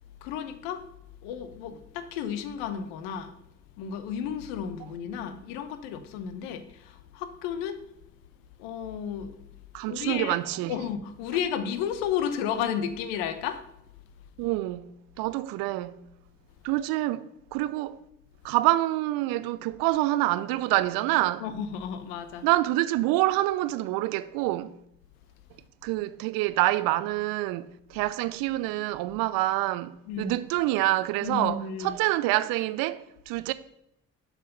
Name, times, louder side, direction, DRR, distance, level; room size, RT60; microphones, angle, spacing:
voice 1, 0.2-0.9 1.2-3.4 3.8-7.8 8.6-10.4 10.7-13.7 21.4-22.5 30.1-30.4 31.2-32.0, left 8 dB, 70° left, 0.8 m, -33 dB
voice 2, 9.7-10.7 14.4-14.9 15.2-16.0 16.6-17.3 17.5-18.0 18.4-21.4 22.4-24.7 25.8-33.5, right 16 dB, 60° right, 0.5 m, -26 dB
7.3 x 4.7 x 5.3 m
figure-of-eight pair, 45°, 40 cm